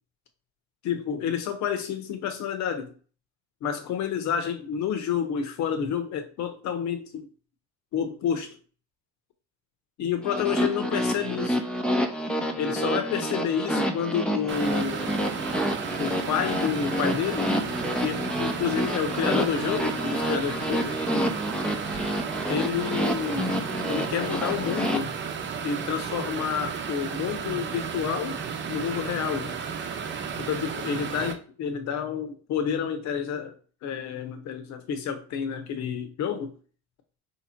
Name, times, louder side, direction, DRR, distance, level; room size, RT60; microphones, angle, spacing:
voice 1, 0.8-3.0 3.6-7.3 7.9-8.6 10.0-11.6 12.6-15.0 16.0-17.5 18.0-21.0 22.5-25.2 25.6-28.4 28.7-29.6 30.4-33.6 33.8-36.5, left 7 dB, 50° left, 1.1 m, -29 dB
sound 1, 10.2-25.0, equal, 5° left, 0.8 m, -28 dB
Fan Hum, 14.5-31.3, right 6 dB, 30° right, 0.9 m, -33 dB
3.5 x 3.0 x 4.4 m
supercardioid pair, 90°, 35 cm